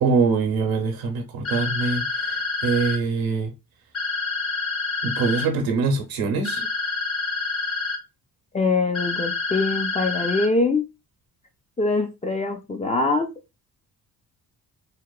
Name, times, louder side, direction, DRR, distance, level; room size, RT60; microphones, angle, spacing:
voice 1, 0.0-3.5 5.0-6.7, right 4 dB, 75° right, 0.8 m, -24 dB
sound 1, 1.4-3.0 3.9-5.5 6.4-8.0 8.9-10.5, left 4 dB, 40° left, 0.7 m, -27 dB
voice 2, 8.5-10.9 11.8-13.3, left 3 dB, 20° left, 0.3 m, -23 dB
2.9 x 2.0 x 2.3 m
cardioid pair, 105°, 37 cm